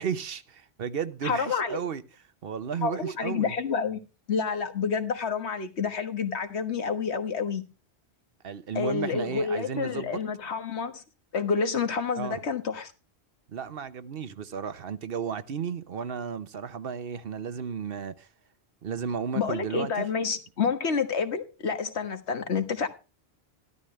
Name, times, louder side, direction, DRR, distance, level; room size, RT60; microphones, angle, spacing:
voice 1, 0.0-2.0 2.4-3.5 8.4-10.2 12.2-12.4 13.5-18.3 18.8-20.1, right 7 dB, 60° right, 1.0 m, -33 dB
voice 2, 1.2-1.8 2.8-4.0 4.3-7.7 8.7-11.0 11.3-12.9 19.3-22.9, left 5 dB, 80° left, 1.7 m, -29 dB
13.0 x 12.5 x 3.2 m
omnidirectional pair, 1.1 m